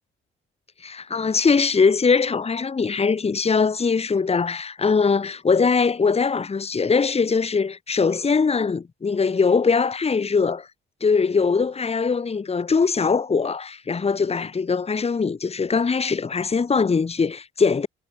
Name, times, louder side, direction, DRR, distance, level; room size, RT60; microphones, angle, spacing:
voice 1, 0.8-10.7 11.0-17.9, left 5 dB, 30° left, 2.3 m, -21 dB
cardioid pair, 90°, 20 cm